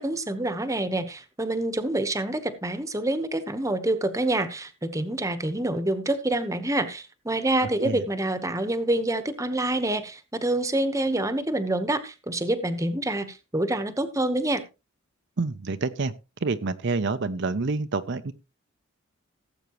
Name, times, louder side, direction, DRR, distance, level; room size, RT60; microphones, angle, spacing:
voice 1, 0.0-14.6, right 1 dB, 15° right, 11 dB, 1.0 m, -27 dB
voice 2, 15.4-16.1 16.4-18.3, right 3 dB, 55° right, 10 dB, 0.6 m, -27 dB
17.5 x 8.0 x 3.0 m, 0.28 s
head